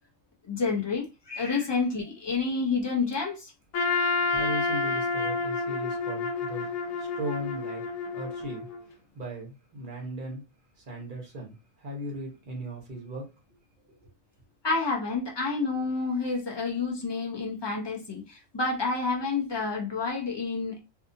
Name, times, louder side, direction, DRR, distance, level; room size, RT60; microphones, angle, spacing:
voice 1, 0.4-3.5 14.6-20.8, left 4 dB, 35° left, 0.4 m, -29 dB
Trumpet, 3.7-8.8, left 3 dB, 90° left, 1.0 m, -29 dB
voice 2, 4.3-6.7 7.0-7.9 8.1-8.7 9.1-10.4 10.8-13.3 14.0-14.1, right 1 dB, 40° right, 1.0 m, -37 dB
2.7 x 2.4 x 2.6 m
omnidirectional pair, 1.4 m